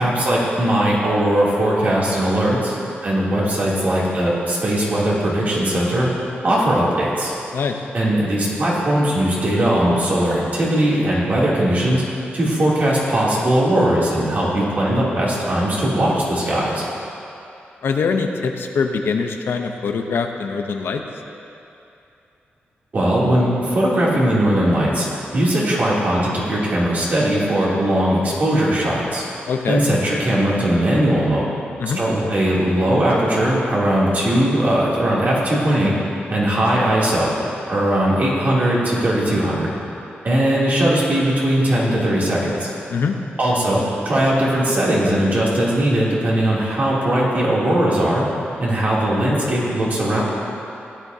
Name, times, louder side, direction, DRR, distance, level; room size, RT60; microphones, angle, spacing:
voice 1, 0.0-6.1 6.4-7.3 7.9-12.0 12.3-16.8 22.9-25.1 25.3-29.2 29.7-31.5 31.9-36.0 36.3-37.3 37.7-39.7 40.2-42.7 43.4-48.3 48.6-50.2, right 1 dB, 45° right, -6 dB, 2.8 m, -19 dB
voice 2, 17.8-21.0 29.5-29.8 31.8-32.0 42.9-43.2, left 5 dB, 75° left, 4 dB, 0.7 m, -23 dB
16.0 x 10.0 x 2.8 m, 2.7 s
wide cardioid pair, 115°, 4 cm